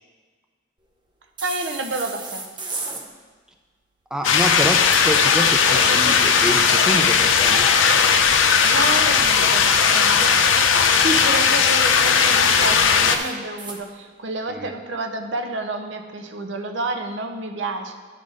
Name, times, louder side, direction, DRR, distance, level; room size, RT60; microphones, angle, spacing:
sound 1, 1.4-3.0 5.1-6.4 8.6-10.1 11.9-13.8, right 3 dB, 25° right, 0.8 m, -37 dB
voice 1, 1.4-2.4 5.7-6.1 8.6-10.5 10.7-17.9, right 2 dB, 75° right, 5 dB, 0.8 m, -29 dB
voice 2, 4.1-7.7 14.5-14.7, equal, 5° right, 3 dB, 0.4 m, -27 dB
sound 2, 4.2-13.2, left 6 dB, 85° left, 0.6 m, -17 dB
11.0 x 4.0 x 4.9 m, 1.4 s
head